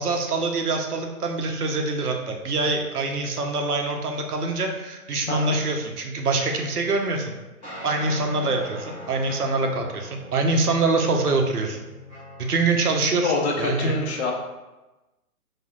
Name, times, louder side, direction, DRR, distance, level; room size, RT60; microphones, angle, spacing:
voice 1, 0.0-7.3 7.8-11.9 12.4-13.9, right 3 dB, 85° right, 3 dB, 0.7 m, -25 dB
voice 2, 5.3-5.6 13.2-14.3, left 3 dB, 50° left, 0 dB, 0.6 m, -25 dB
sound 1, 7.6-12.8, left 1 dB, 10° left, 0.7 m, -41 dB
4.2 x 2.1 x 2.2 m, 1.1 s
figure-of-eight pair, 130°, 44 cm